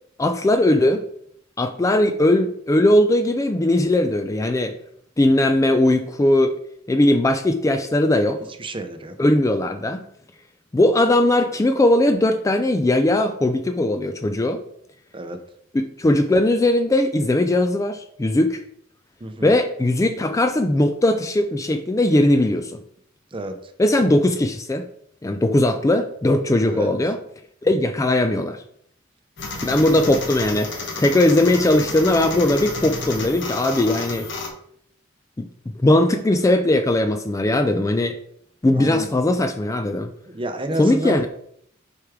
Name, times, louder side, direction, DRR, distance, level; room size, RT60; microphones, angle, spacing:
voice 1, 0.2-1.0 1.6-4.7 5.2-6.5 6.9-8.4 9.2-10.0 10.7-14.6 15.7-18.6 19.4-22.8 23.8-24.9 25.2-27.2 27.6-28.6 29.6-34.3 35.4-35.5 35.8-38.2 38.6-40.1 40.8-41.3, left 1 dB, 15° left, 7 dB, 0.3 m, -19 dB
voice 2, 8.6-9.2 15.1-15.4 19.2-19.5 23.3-23.6 26.6-26.9 38.7-39.1 40.3-41.2, right 1 dB, 25° right, 8 dB, 0.6 m, -29 dB
sound 1, 29.4-34.5, left 3 dB, 65° left, 1.2 m, -31 dB
6.5 x 4.6 x 3.6 m, 0.69 s
head